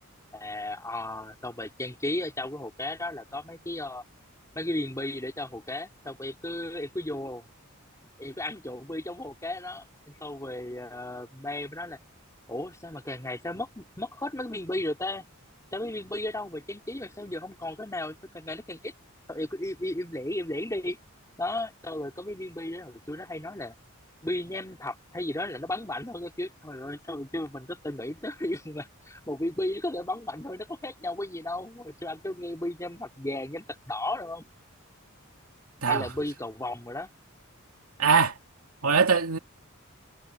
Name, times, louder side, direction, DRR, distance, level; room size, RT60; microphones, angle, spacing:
voice 1, 0.3-4.0 4.6-7.5 8.2-12.0 12.5-15.3 15.7-18.9 19.3-21.0 21.4-23.7 24.2-34.5 35.9-37.1, left 1 dB, 15° left, 3.6 m, -34 dB
voice 2, 38.0-38.3 38.8-39.4, right 5 dB, 85° right, 2.5 m, -22 dB
head